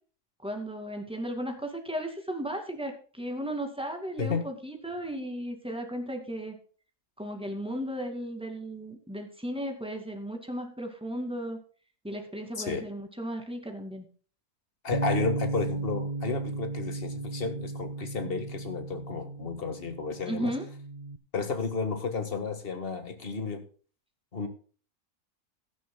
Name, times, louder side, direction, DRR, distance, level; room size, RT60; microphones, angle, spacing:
voice 1, 0.4-6.6 7.2-11.6 12.0-14.1 20.3-20.7, equal, 5° right, 4 dB, 2.3 m, -35 dB
voice 2, 14.8-20.5 21.3-23.6 24.3-24.5, left 4 dB, 35° left, 7 dB, 1.9 m, -32 dB
Bass guitar, 14.9-21.2, right 3 dB, 35° right, 0.7 m, -35 dB
16.5 x 11.0 x 2.3 m, 0.40 s
omnidirectional pair, 1.7 m